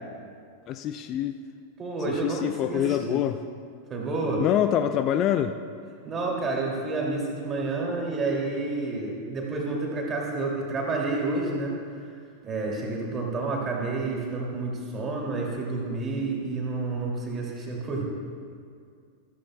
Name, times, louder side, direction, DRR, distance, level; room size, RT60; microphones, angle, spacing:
voice 1, 0.7-1.4 2.1-3.4 4.4-5.5, left 11 dB, 35° left, 9 dB, 0.4 m, -25 dB
voice 2, 1.8-3.2 3.9-4.4 6.0-11.8 12.4-18.0, right 3 dB, 25° right, -1 dB, 2.5 m, -29 dB
14.0 x 14.0 x 2.2 m, 2.2 s
figure-of-eight pair, 90°, 0 cm